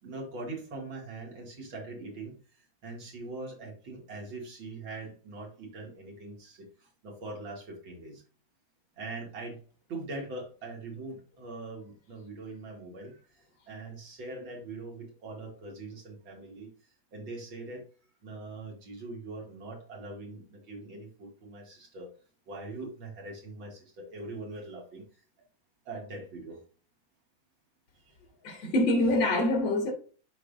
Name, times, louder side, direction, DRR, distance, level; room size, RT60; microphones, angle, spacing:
voice 1, 0.0-8.2 9.0-9.6 9.9-13.2 13.7-16.7 17.1-17.8 18.2-22.1 22.5-25.0 25.8-26.6 28.1-28.2, right 2 dB, 80° right, 3.0 m, -42 dB
voice 2, 28.4-29.9, left 1 dB, 80° left, 2.6 m, -25 dB
11.0 x 4.4 x 2.6 m
omnidirectional pair, 2.1 m